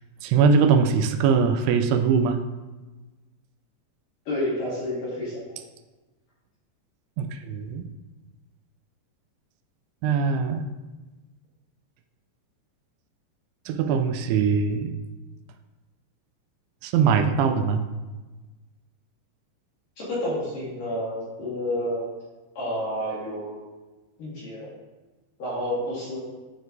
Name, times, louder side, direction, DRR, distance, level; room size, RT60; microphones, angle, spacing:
voice 1, 0.2-2.4 7.2-7.9 10.0-10.7 13.7-14.9 16.8-17.9, right 6 dB, 85° right, 6 dB, 2.3 m, -21 dB
voice 2, 4.3-5.6 20.0-22.1 22.6-23.6 24.2-24.7 25.4-26.2, left 1 dB, 60° left, -8 dB, 3.0 m, -30 dB
11.5 x 4.1 x 2.6 m, 1.2 s
omnidirectional pair, 5.1 m